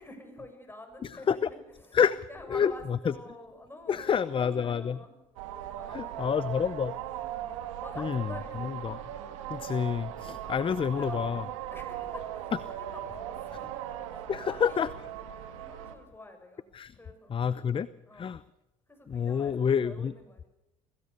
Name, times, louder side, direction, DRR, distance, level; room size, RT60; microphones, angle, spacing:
voice 1, 0.0-2.0 2.3-5.2 5.7-6.8 7.3-8.8 9.2-9.5 10.1-14.9 15.6-17.3 18.0-18.4 18.9-20.5, left 1 dB, 15° left, 5 dB, 7.0 m, -49 dB
voice 2, 1.0-1.5 1.9-3.1 3.9-5.0 5.9-6.9 8.0-8.3 8.6-9.0 9.5-11.4 14.3-14.9 16.7-16.9 17.3-17.9 18.1-18.4 19.1-20.1, left 7 dB, 35° left, 17 dB, 0.8 m, -28 dB
sound 1, 5.4-15.9, right 11 dB, 90° right, 2.1 m, -39 dB
24.0 x 17.0 x 6.8 m, 0.95 s
supercardioid pair, 75°, 16 cm